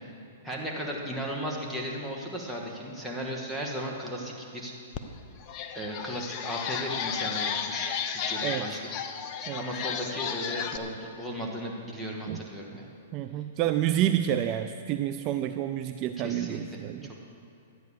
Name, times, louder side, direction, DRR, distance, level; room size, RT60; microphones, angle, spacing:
voice 1, 0.4-4.7 5.7-8.9 9.6-12.9 16.2-17.1, equal, ahead, -4 dB, 2.0 m, -36 dB
sound 1, 4.9-5.0 5.4-10.8, left 7 dB, 35° left, 0.9 m, -33 dB
voice 2, 13.1-17.1, right 11 dB, 40° right, 9 dB, 0.4 m, -29 dB
12.5 x 9.3 x 6.9 m, 2.7 s
hypercardioid pair, 125°, 0 cm